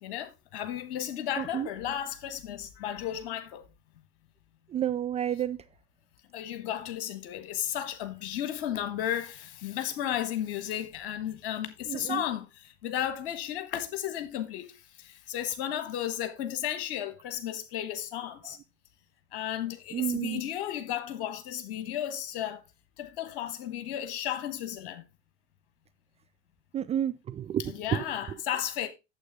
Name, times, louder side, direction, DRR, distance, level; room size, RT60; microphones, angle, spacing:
voice 1, 0.0-3.6 6.3-18.6 19.3-22.6 23.0-25.0 27.7-28.9, left 11 dB, 60° left, 1.4 m, -34 dB
voice 2, 1.4-1.7 4.7-5.6 11.9-12.2 19.9-20.4 26.7-28.4, right 10 dB, 20° right, 0.4 m, -31 dB
9.0 x 7.4 x 3.5 m
figure-of-eight pair, 70°, 32 cm